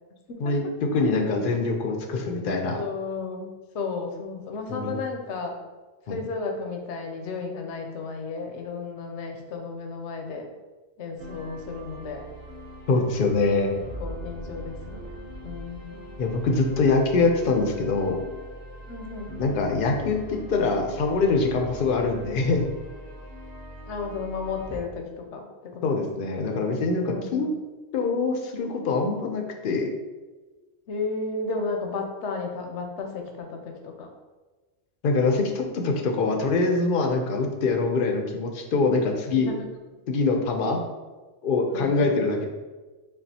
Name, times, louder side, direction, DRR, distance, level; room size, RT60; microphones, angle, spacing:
voice 1, 0.9-2.8 4.7-5.0 6.1-6.2 12.9-13.7 16.2-18.2 19.4-22.6 25.8-27.5 27.9-29.9 35.0-39.5 40.1-40.8 41.4-42.4, left 3 dB, 60° left, 3 dB, 0.6 m, -24 dB
voice 2, 2.7-5.6 6.1-10.5 11.0-12.2 13.7-16.0 18.9-19.3 23.9-26.0 27.0-27.5 30.9-34.1 39.3-39.7 41.7-42.1, left 4 dB, 85° left, 3 dB, 0.9 m, -33 dB
sound 1, 11.2-24.8, equal, 40° right, 0.9 m, -41 dB
5.4 x 2.3 x 2.7 m, 1.3 s
omnidirectional pair, 1.2 m